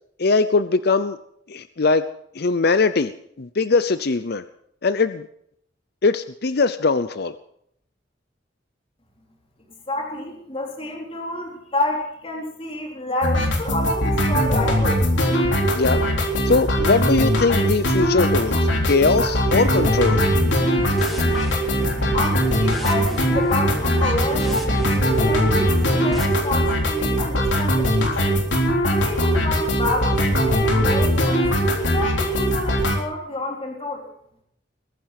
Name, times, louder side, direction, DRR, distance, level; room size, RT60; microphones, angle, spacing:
voice 1, 0.2-1.2 1.5-2.0 2.4-3.1 3.4-4.4 4.8-5.2 6.0-7.3 15.7-16.0 16.4-20.2, left 3 dB, 60° left, 12 dB, 0.7 m, -20 dB
voice 2, 9.9-15.0 22.1-24.6 24.9-28.4 28.8-31.5 31.9-34.1, left 2 dB, 30° left, 0 dB, 3.9 m, -29 dB
sound 1, 13.2-33.0, equal, 75° left, 3.7 m, -20 dB
sound 2, 19.4-26.3, right 1 dB, ahead, 2.8 m, -36 dB
21.5 x 10.5 x 6.0 m, 0.70 s
head